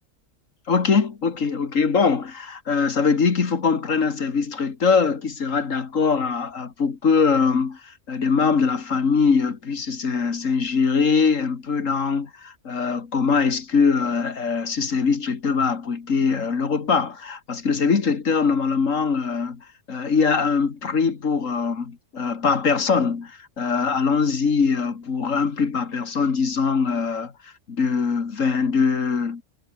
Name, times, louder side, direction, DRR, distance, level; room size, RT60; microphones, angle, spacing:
voice 1, 0.7-19.6 19.9-29.4, left 5 dB, 80° left, 2.3 m, -22 dB
omnidirectional pair, 1.3 m